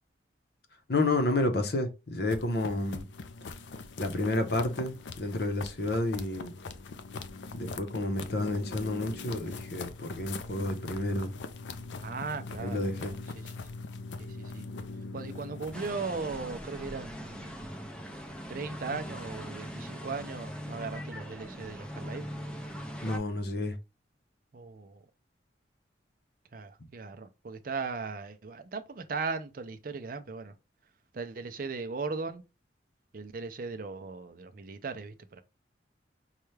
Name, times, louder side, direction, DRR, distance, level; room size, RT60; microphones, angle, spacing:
voice 1, 0.9-3.1 4.0-6.5 7.5-11.3 12.6-13.2 18.9-19.0 23.0-23.8, left 2 dB, 60° left, 0.8 m, -30 dB
sound 1, 2.2-15.9, left 3 dB, 75° left, 0.5 m, -42 dB
voice 2, 12.0-13.5 14.2-14.7 15.1-17.6 18.5-22.2 24.5-25.0 26.5-30.5 31.1-32.4 33.1-35.4, right 4 dB, 50° right, 0.5 m, -38 dB
sound 2, 15.7-23.2, equal, 5° left, 0.5 m, -41 dB
5.5 x 2.3 x 3.2 m
head